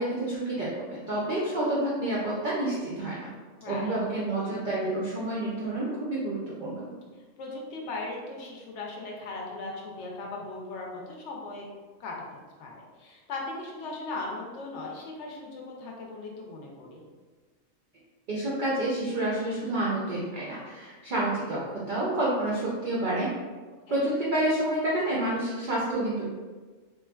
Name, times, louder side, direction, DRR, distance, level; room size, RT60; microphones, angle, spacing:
voice 1, 0.0-3.3 3.7-6.9 18.3-23.3 23.9-26.3, right 1 dB, 65° right, -7 dB, 0.4 m, -29 dB
voice 2, 3.6-4.0 7.4-11.7 12.0-17.0 23.9-24.1, left 2 dB, 65° left, -2 dB, 0.8 m, -38 dB
3.0 x 2.2 x 2.2 m, 1.4 s
omnidirectional pair, 1.4 m